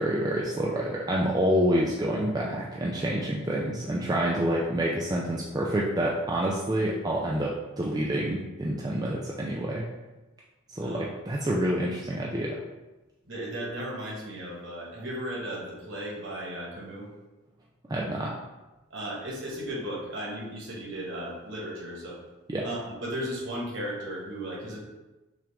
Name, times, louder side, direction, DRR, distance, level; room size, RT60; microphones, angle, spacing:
voice 1, 0.0-9.9 10.7-12.6 17.9-18.3 22.5-22.7, right 1 dB, 20° right, -3 dB, 0.3 m, -28 dB
voice 2, 10.8-11.1 13.3-17.1 18.9-22.2 22.6-24.8, right 1 dB, 55° right, -3 dB, 1.3 m, -35 dB
5.8 x 2.5 x 3.4 m, 1.1 s
head